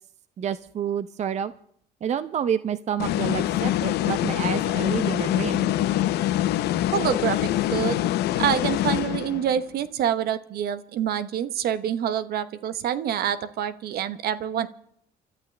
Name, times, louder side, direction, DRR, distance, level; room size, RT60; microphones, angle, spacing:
voice 1, 0.4-1.5 2.0-5.7, right 8 dB, 40° right, 14 dB, 0.6 m, -29 dB
sound 1, 3.0-9.6, left 13 dB, 75° left, 0.7 m, -24 dB
voice 2, 6.9-8.0 8.4-14.7, right 9 dB, 65° right, 14 dB, 1.0 m, -26 dB
29.5 x 13.0 x 3.3 m, 0.69 s
cardioid pair, 110°, 17 cm